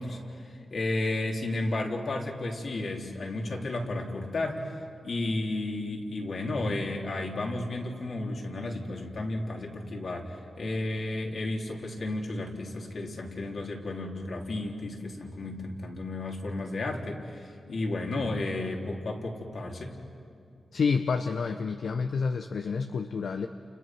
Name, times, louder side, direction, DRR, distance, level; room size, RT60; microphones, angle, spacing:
voice 1, 0.0-4.8 5.0-19.9, left 2 dB, 60° left, 0 dB, 3.9 m, -33 dB
voice 2, 20.7-23.5, left 5 dB, 75° left, 6 dB, 1.0 m, -29 dB
30.0 x 29.5 x 6.2 m, 2.5 s
cardioid pair, 80°, 0 cm